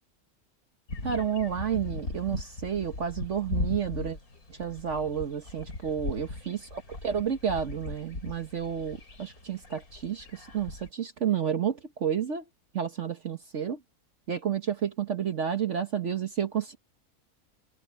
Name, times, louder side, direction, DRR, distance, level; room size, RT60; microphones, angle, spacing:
sound 1, 0.9-10.9, left 2 dB, 70° left, 4.3 m, -38 dB
voice 1, 1.0-4.2 4.5-12.4 12.7-13.8 14.3-16.8, right 8 dB, 55° right, 1.4 m, -31 dB
omnidirectional pair, 1.6 m